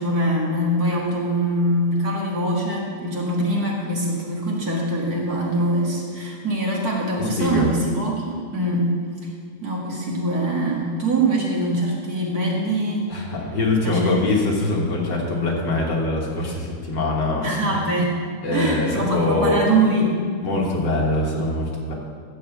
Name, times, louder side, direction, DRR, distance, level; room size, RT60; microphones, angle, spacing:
voice 1, 0.0-8.9 9.6-13.1 13.8-14.3 17.4-18.1 18.5-20.1, right 1 dB, 45° right, -3 dB, 2.0 m, -23 dB
voice 2, 7.2-7.7 13.1-17.5 18.4-19.7 20.4-21.9, left 2 dB, 60° left, -2 dB, 2.2 m, -23 dB
14.0 x 4.8 x 7.3 m, 2.1 s
omnidirectional pair, 2.3 m